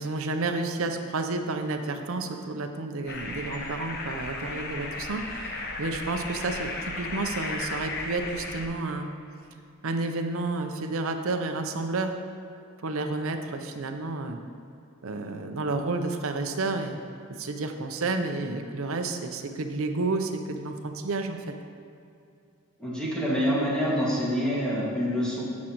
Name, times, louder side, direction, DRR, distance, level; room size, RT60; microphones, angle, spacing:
voice 1, 0.0-6.7 7.0-9.1 9.8-12.1 12.8-14.4 15.0-17.0 17.4-21.5, right 3 dB, 70° right, 5 dB, 0.7 m, -30 dB
sound 1, 3.1-8.7, left 3 dB, 50° left, 0.9 m, -35 dB
voice 2, 22.8-25.4, equal, 5° left, -7 dB, 2.0 m, -26 dB
13.5 x 6.2 x 3.0 m, 2.5 s
head